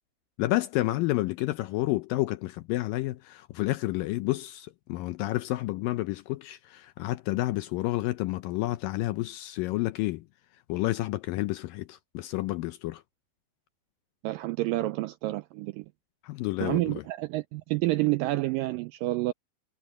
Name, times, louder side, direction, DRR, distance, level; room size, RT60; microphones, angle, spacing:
voice 1, 0.4-10.2 10.7-13.0 16.2-16.9, left 18 dB, 80° left, 2.1 m, -30 dB
voice 2, 14.2-15.9 16.6-19.3, right 19 dB, 85° right, 2.0 m, -29 dB
omnidirectional pair, 4.5 m